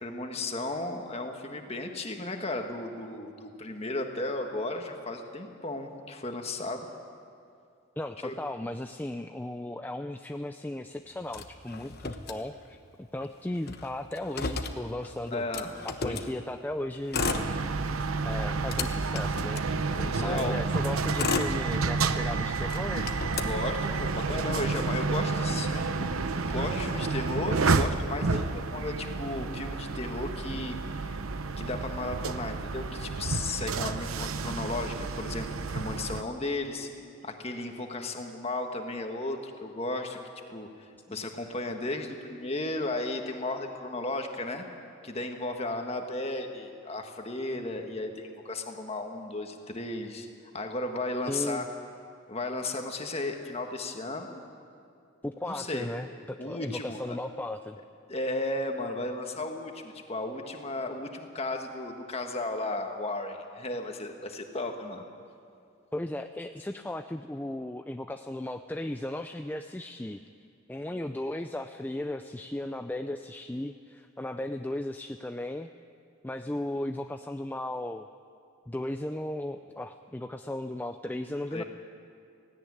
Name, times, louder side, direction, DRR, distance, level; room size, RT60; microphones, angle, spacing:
voice 1, 0.0-6.9 8.2-8.3 15.3-15.7 16.0-16.2 19.9-20.6 23.4-31.2 31.6-36.9 37.2-40.2 40.5-44.6 45.0-50.3 50.5-51.6 52.3-54.4 55.4-55.9 56.4-57.2 58.1-65.0 81.5-81.6, left 2 dB, 30° left, 4 dB, 1.7 m, -34 dB
voice 2, 8.0-12.8 13.1-15.4 15.8-17.5 18.2-19.6 20.2-23.1 41.1-41.2 51.3-51.6 55.2-57.8 65.9-70.2 70.7-75.7 76.2-78.1 78.7-81.6, left 1 dB, 10° left, 7 dB, 0.4 m, -36 dB
Motor vehicle (road), 11.3-12.9 13.2-13.3 13.5-16.3 17.0-18.0 18.4-20.2 20.8-22.2 22.6-24.2, left 4 dB, 50° left, 1.1 m, -34 dB
sound 1, 17.2-36.2, right 4 dB, 90° right, 0.8 m, -30 dB
17.0 x 16.5 x 9.7 m, 2.4 s
head